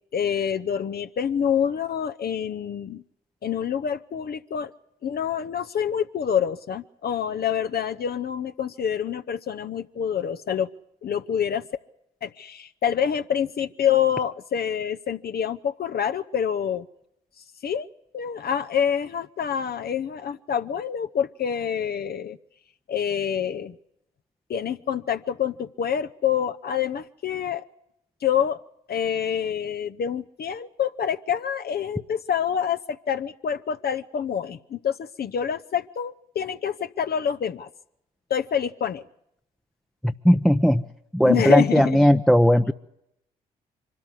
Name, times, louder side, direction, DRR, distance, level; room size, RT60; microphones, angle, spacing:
voice 1, 0.1-3.0 3.4-4.7 5.0-10.7 11.0-11.7 12.2-16.9 17.6-17.9 18.1-22.4 22.9-23.8 24.5-27.6 28.2-28.6 28.9-37.7 38.3-39.0 41.2-42.0, left 8 dB, 50° left, 9 dB, 0.8 m, -27 dB
voice 2, 40.0-40.8 41.1-42.7, equal, ahead, 8 dB, 0.7 m, -18 dB
24.5 x 13.0 x 9.5 m, 0.79 s
hypercardioid pair, 45°, 21 cm